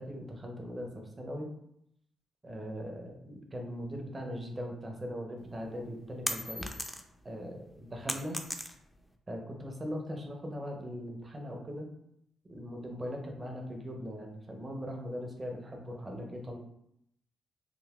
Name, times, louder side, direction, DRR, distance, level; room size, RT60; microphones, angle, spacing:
voice 1, 0.0-1.5 2.4-6.6 7.2-8.4 9.3-11.9 12.5-16.6, equal, 30° right, 1 dB, 0.9 m, -40 dB
sound 1, 5.5-7.3 7.6-9.1, left 1 dB, 5° left, 0.5 m, -37 dB
3.9 x 2.6 x 2.4 m, 0.76 s
hypercardioid pair, 40°, 0 cm